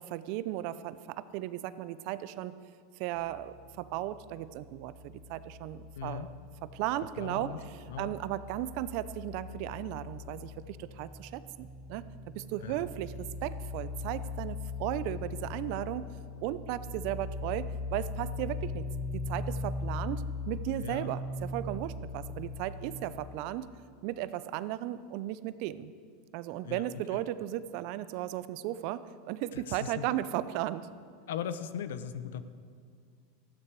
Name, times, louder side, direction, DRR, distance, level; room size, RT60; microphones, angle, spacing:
voice 1, 0.0-2.6 3.0-6.3 6.6-16.1 16.4-18.9 19.1-23.7 24.0-25.9 26.3-30.9, right 14 dB, 55° right, 15 dB, 0.6 m, -36 dB
sound 1, 3.2-7.0 7.2-23.0, left 3 dB, 20° right, 1.4 m, -40 dB
voice 2, 6.0-6.3 7.2-7.6 7.9-8.1 12.6-12.9 20.8-21.1 26.6-27.2 29.5-30.1 31.3-32.4, left 8 dB, 80° left, 12 dB, 0.7 m, -39 dB
14.0 x 12.0 x 4.7 m, 2.1 s
hypercardioid pair, 110°, 0 cm